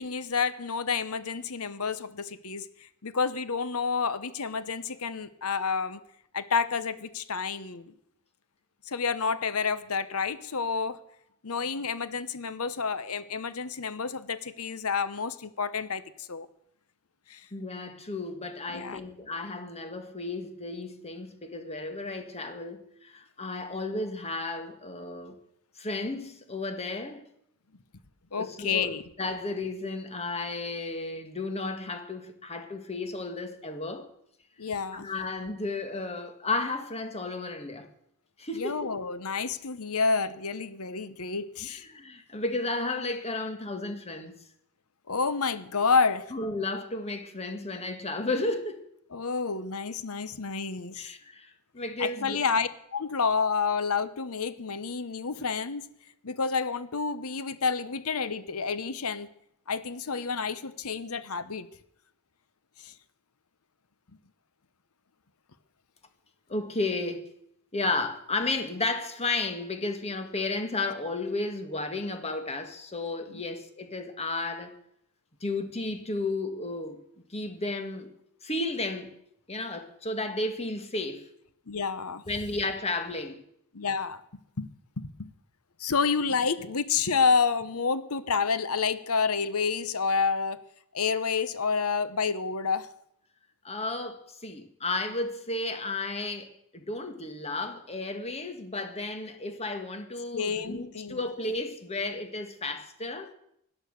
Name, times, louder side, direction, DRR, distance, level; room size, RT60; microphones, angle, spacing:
voice 1, 0.0-2.7 3.0-6.0 6.3-7.9 8.9-11.0 11.4-16.5 17.3-17.4 18.7-19.0 28.3-29.0 34.6-35.1 38.5-41.8 45.1-46.3 49.1-51.1 52.0-55.8 56.2-59.3 59.7-61.7 62.8-62.9 73.3-73.4 81.7-82.2 83.7-84.2 84.6-84.7 85.0-85.3 85.8-90.6 90.9-92.9 100.3-101.2, left 5 dB, 70° left, 1.0 m, -29 dB
voice 2, 17.5-25.4 25.8-27.3 28.3-34.1 34.9-37.9 38.4-38.9 41.7-44.4 46.3-48.8 51.0-52.4 66.5-67.4 67.7-74.7 75.4-77.0 77.3-78.1 78.4-79.2 79.5-81.3 82.3-83.4 93.6-103.3, left 2 dB, 30° left, 1.8 m, -33 dB
17.0 x 11.5 x 6.6 m
head